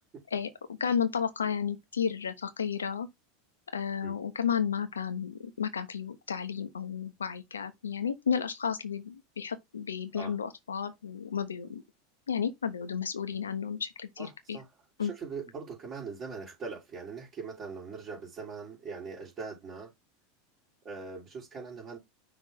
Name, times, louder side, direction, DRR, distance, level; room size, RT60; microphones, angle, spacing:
voice 1, 0.3-3.1 3.7-11.8 12.3-14.6 15.0-15.1, left 7 dB, 85° left, 1.1 m, -32 dB
voice 2, 14.2-14.7 15.0-19.9 20.8-22.0, right 5 dB, 35° right, 3.7 m, -41 dB
5.8 x 3.5 x 5.3 m
hypercardioid pair, 90°, 0 cm